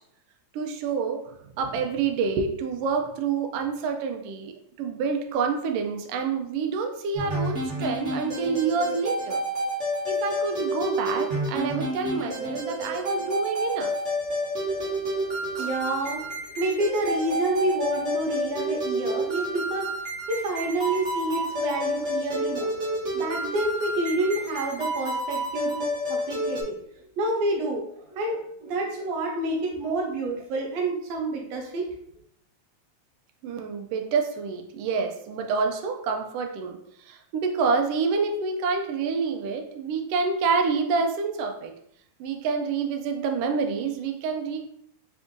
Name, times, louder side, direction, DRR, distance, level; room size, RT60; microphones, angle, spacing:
voice 1, 0.5-9.4 10.1-13.9 15.6-15.7 33.4-41.7 42.2-44.7, right 5 dB, 90° right, 4 dB, 1.3 m, -27 dB
sound 1, 7.1-26.6, equal, 50° right, 0.8 m, -29 dB
voice 2, 14.6-19.9 20.3-22.8 23.1-26.9 27.2-31.9, right 2 dB, 70° right, 0 dB, 1.9 m, -29 dB
4.7 x 2.6 x 3.6 m, 0.70 s
omnidirectional pair, 3.3 m